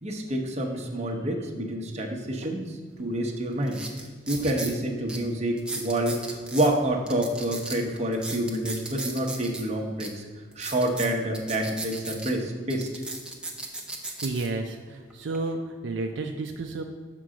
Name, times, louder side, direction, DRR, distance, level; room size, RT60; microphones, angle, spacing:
voice 1, 0.0-3.8 4.3-10.2 10.6-12.9, right 1 dB, 35° right, 1 dB, 0.8 m, -28 dB
sound 1, 3.0-3.1 3.6-4.7 5.1-5.2 5.6-6.7 7.1-9.6 10.0-10.1 10.5-12.3 12.7-14.5 15.1-15.4, right 2 dB, 5° right, 0.6 m, -36 dB
voice 2, 14.2-16.8, right 3 dB, 65° right, 3 dB, 0.4 m, -31 dB
6.1 x 3.7 x 6.1 m, 1.5 s
head